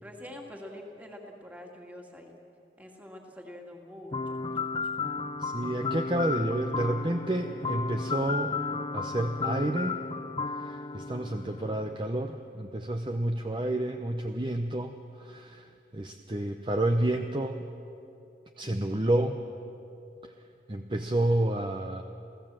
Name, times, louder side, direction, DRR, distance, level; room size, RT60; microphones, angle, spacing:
voice 1, 0.0-2.3 2.8-4.7, left 1 dB, 10° right, 1 dB, 2.2 m, -45 dB
sound 1, 4.1-12.0, left 4 dB, 25° left, 0.5 m, -33 dB
voice 2, 5.4-8.5 8.9-10.0 10.6-17.7 18.6-19.5 20.2-20.3 20.7-22.0, right 1 dB, 25° right, 6 dB, 0.7 m, -30 dB
28.0 x 16.5 x 7.5 m, 2.8 s
head